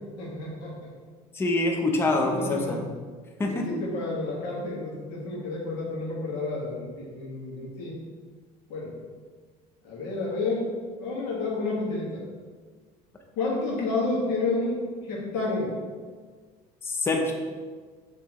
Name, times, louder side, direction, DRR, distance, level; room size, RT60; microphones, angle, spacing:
voice 1, 0.2-0.9 2.1-2.8 3.5-8.0 8.7-8.9 9.8-10.7 11.0-12.2 13.3-15.7, left 3 dB, 80° left, -4 dB, 1.5 m, -30 dB
voice 2, 1.3-2.8 3.4-3.8 16.8-17.4, left 2 dB, 15° left, 2 dB, 0.5 m, -26 dB
5.7 x 3.0 x 3.0 m, 1.5 s
cardioid pair, 145°, 16 cm